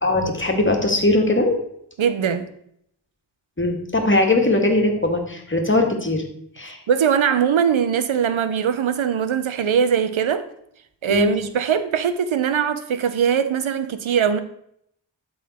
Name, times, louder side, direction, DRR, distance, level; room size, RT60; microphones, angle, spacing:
voice 1, 0.0-1.6 3.6-6.2 6.6-6.8 11.1-11.4, left 2 dB, 25° left, 1.8 m, -20 dB
voice 2, 2.0-2.5 6.9-10.5 11.0-14.4, right 7 dB, 80° right, 0.7 m, -21 dB
12.0 x 4.0 x 4.2 m
cardioid pair, 40°, 47 cm